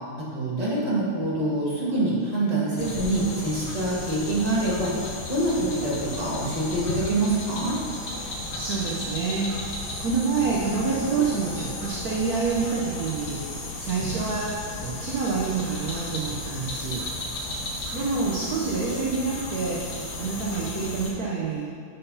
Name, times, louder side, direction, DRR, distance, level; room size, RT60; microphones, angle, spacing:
voice 1, 0.2-4.9 5.3-7.8, right 2 dB, 20° right, -7 dB, 1.8 m, -25 dB
sound 1, 2.8-21.1, left 2 dB, 55° left, 1.6 m, -34 dB
voice 2, 8.2-9.7 10.0-17.1 17.9-19.9 20.2-21.7, right 4 dB, 55° right, -3 dB, 1.2 m, -28 dB
7.5 x 5.6 x 5.6 m, 2.3 s
omnidirectional pair, 2.3 m